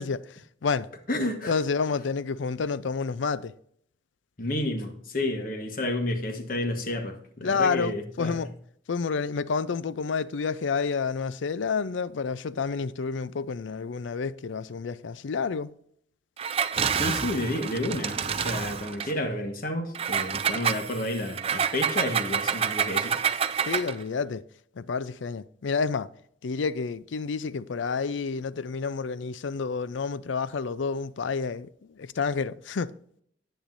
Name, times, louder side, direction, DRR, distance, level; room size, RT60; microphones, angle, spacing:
voice 1, 0.0-0.9 1.5-3.5 7.4-8.5 8.9-15.7 23.7-24.4 24.8-26.1 26.4-32.9, left 5 dB, 80° left, 0.5 m, -29 dB
voice 2, 1.1-1.5 4.4-8.4 16.9-23.2, left 1 dB, 50° left, 1.3 m, -30 dB
Engine, 16.4-19.1 19.9-24.0, right 7 dB, 30° right, 0.4 m, -28 dB
10.0 x 9.2 x 2.6 m
head